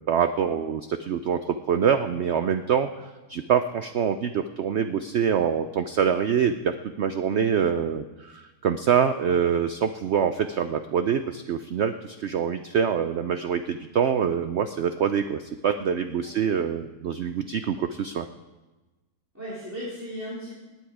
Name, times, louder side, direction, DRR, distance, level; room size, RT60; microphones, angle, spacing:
voice 1, 0.0-2.9 3.3-18.3, right 7 dB, 80° right, 9 dB, 0.6 m, -25 dB
voice 2, 19.3-20.5, equal, 10° right, -10 dB, 4.0 m, -36 dB
18.0 x 9.4 x 4.8 m, 1.2 s
omnidirectional pair, 1.8 m